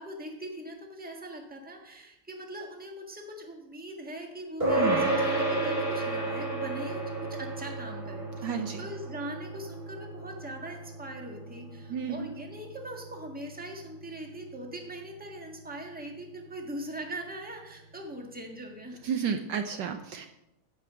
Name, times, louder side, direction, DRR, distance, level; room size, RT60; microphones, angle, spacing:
voice 1, 0.0-19.0, right 1 dB, 5° right, 2 dB, 1.4 m, -41 dB
sound 1, 4.6-14.3, right 2 dB, 25° right, 4.9 m, -32 dB
voice 2, 4.8-5.1 8.4-8.8 11.9-12.3 19.0-20.3, right 7 dB, 70° right, 6 dB, 1.3 m, -31 dB
15.0 x 5.8 x 6.2 m, 0.89 s
omnidirectional pair, 2.2 m